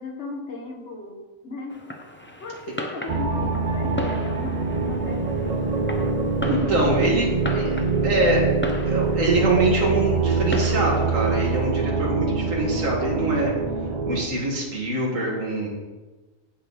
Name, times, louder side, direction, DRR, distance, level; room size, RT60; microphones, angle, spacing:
voice 1, 0.0-1.9 2.4-5.9, left 2 dB, 55° left, 2 dB, 1.6 m, -37 dB
Fireworks, 1.7-11.7, left 1 dB, 10° left, 0.6 m, -37 dB
sound 1, 3.1-14.2, right 4 dB, 40° right, 0.8 m, -24 dB
voice 2, 6.5-8.5 8.8-13.5 14.1-15.7, right 2 dB, 70° right, -3 dB, 2.2 m, -24 dB
8.7 x 8.3 x 4.0 m, 1.2 s
omnidirectional pair, 1.4 m